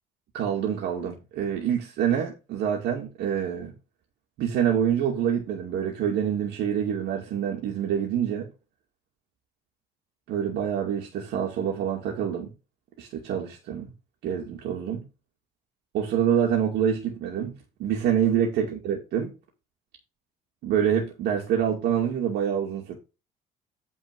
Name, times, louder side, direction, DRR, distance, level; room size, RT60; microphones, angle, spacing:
voice 1, 0.3-3.7 4.4-8.5 10.3-12.5 13.0-13.9 14.2-15.0 15.9-17.5 17.8-19.3 20.6-23.0, right 9 dB, 80° right, 2.3 m, -26 dB
9.1 x 4.7 x 5.3 m
cardioid pair, 110°, 17 cm